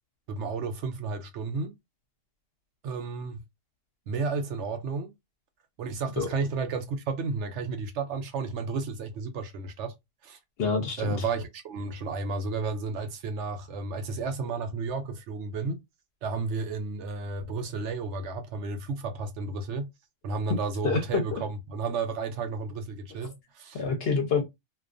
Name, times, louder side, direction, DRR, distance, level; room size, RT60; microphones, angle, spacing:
voice 1, 0.3-1.7 2.8-3.4 4.1-5.1 5.8-9.9 10.2-10.4 11.0-15.8 16.2-19.9 20.2-23.8, right 4 dB, 70° right, 0.8 m, -32 dB
voice 2, 10.6-11.2 20.8-21.4 23.7-24.4, left 5 dB, 60° left, 0.8 m, -27 dB
2.3 x 2.3 x 2.4 m
omnidirectional pair, 1.3 m